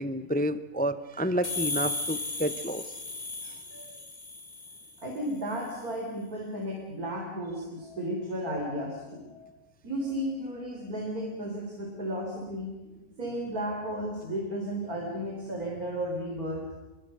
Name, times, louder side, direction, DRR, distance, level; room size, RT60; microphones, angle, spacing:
voice 1, 0.0-2.9 3.4-3.6, equal, 10° left, 13 dB, 0.5 m, -30 dB
sound 1, 1.4-5.0, left 2 dB, 90° left, 3.9 m, -35 dB
voice 2, 5.0-9.5 9.8-12.7 13.2-16.7, equal, 85° right, 0 dB, 4.4 m, -34 dB
26.5 x 23.0 x 6.6 m, 1.1 s
omnidirectional pair, 1.5 m